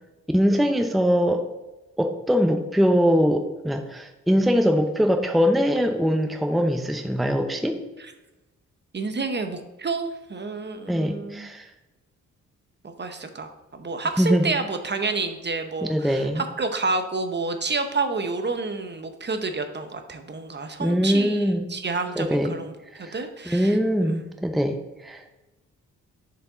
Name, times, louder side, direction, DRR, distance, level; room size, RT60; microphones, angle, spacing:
voice 1, 0.3-1.5 2.0-7.8 10.9-11.7 14.2-14.5 15.8-16.4 20.8-21.7 22.2-22.6 22.9-23.2 23.5-25.4, equal, ahead, 6 dB, 0.6 m, -22 dB
voice 2, 8.9-11.5 12.8-24.2, right 3 dB, 35° right, 7 dB, 0.8 m, -29 dB
6.6 x 4.8 x 3.9 m, 1.1 s
cardioid pair, 60°, 32 cm